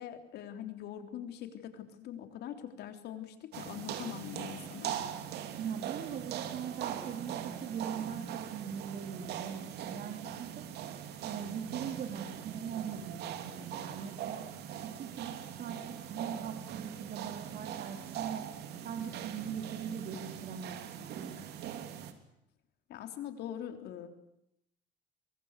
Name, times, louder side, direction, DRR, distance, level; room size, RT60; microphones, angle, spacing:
voice 1, 0.0-4.9 22.9-24.1, left 10 dB, 75° left, 7 dB, 3.4 m, -43 dB
sound 1, 3.5-22.1, right 9 dB, 75° right, 3.0 m, -41 dB
voice 2, 5.6-10.6 11.2-14.4 14.8-18.4 18.8-21.4, right 7 dB, 60° right, 4 dB, 3.4 m, -41 dB
23.5 x 23.0 x 8.2 m, 0.80 s
cardioid pair, 110°, 17 cm